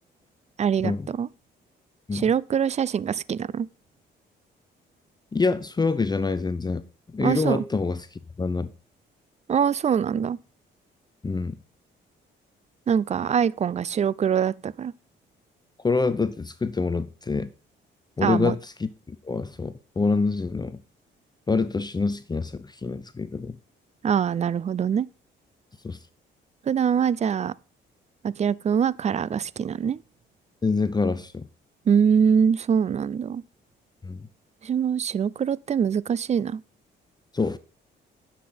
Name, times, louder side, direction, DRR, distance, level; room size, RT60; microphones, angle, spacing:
voice 1, 0.6-1.3 2.1-3.7 7.2-7.6 9.5-10.4 12.9-14.9 18.2-18.6 24.0-25.1 26.7-27.5 28.2-30.0 31.9-33.4 34.6-36.6, right 7 dB, 35° right, 0.5 m, -23 dB
voice 2, 5.3-6.8 7.1-8.7 11.2-11.5 15.8-17.5 18.2-20.8 21.5-23.6 25.8-26.0 30.6-31.5 34.0-34.3 37.3-37.6, left 4 dB, 20° left, 0.7 m, -26 dB
10.0 x 7.4 x 4.3 m
cardioid pair, 90°, 20 cm